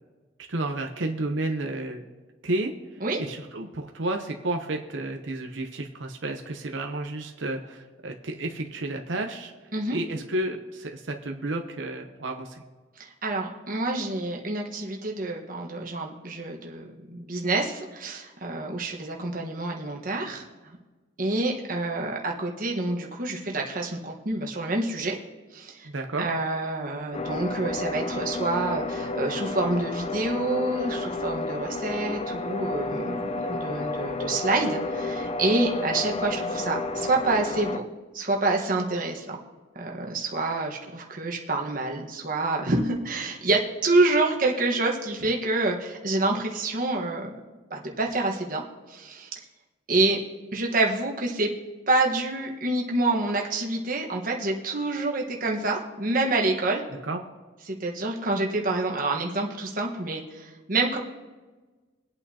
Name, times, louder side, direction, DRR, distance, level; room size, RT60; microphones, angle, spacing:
voice 1, 0.5-2.0 2.4-2.7 3.2-9.5 9.9-12.6 25.8-26.3 57.1-57.2, right 2 dB, 85° right, 3 dB, 0.9 m, -31 dB
voice 2, 13.0-20.4 21.2-25.2 25.5-25.9 26.2-37.8 38.1-39.4 39.7-47.4 47.7-48.6 48.9-49.3 49.9-50.2 50.5-51.5 51.9-56.8 57.7-61.0, right 2 dB, 45° right, 0 dB, 1.4 m, -27 dB
sound 1, 27.1-37.8, left 3 dB, 35° left, 0.5 m, -31 dB
23.0 x 8.7 x 2.8 m, 1.3 s
head